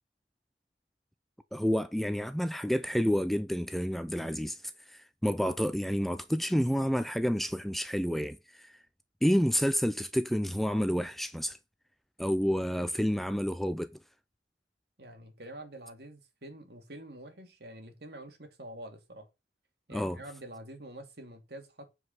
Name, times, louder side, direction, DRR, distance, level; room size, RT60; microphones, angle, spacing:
voice 1, 1.5-4.6 4.9-8.8 9.2-11.6 12.2-13.9 19.9-20.2, equal, ahead, 0.4 m, -29 dB
voice 2, 15.0-19.3 19.9-21.9, right 1 dB, 60° right, 2.5 m, -47 dB
9.6 x 5.0 x 6.5 m
head